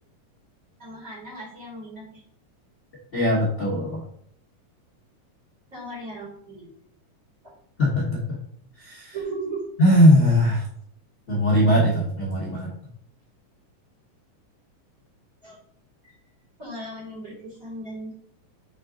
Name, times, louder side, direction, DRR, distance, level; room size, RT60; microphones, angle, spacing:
voice 1, 0.8-2.2 5.7-6.7 7.4-7.5 9.1-9.6 15.4-15.6 16.0-16.1 16.6-18.1, right 2 dB, 25° right, -7 dB, 2.8 m, -36 dB
voice 2, 3.1-4.0 7.8-8.2 8.8-9.1 9.8-10.7 11.3-12.7, equal, 60° left, -6 dB, 0.7 m, -19 dB
6.5 x 3.8 x 3.8 m, 0.63 s
omnidirectional pair, 3.7 m